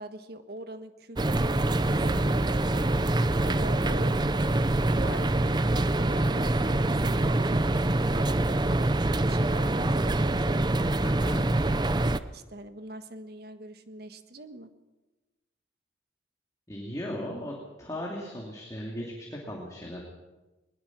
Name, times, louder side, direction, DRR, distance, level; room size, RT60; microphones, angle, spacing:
voice 1, 0.0-2.6 3.4-4.2 5.0-10.7 12.3-14.7, right 1 dB, 55° right, 9 dB, 1.5 m, -42 dB
sound 1, 1.2-12.2, right 2 dB, 25° right, 0.6 m, -25 dB
voice 2, 11.0-11.5 16.7-20.0, equal, 15° left, -2 dB, 2.7 m, -37 dB
21.0 x 20.5 x 6.1 m, 1.1 s
head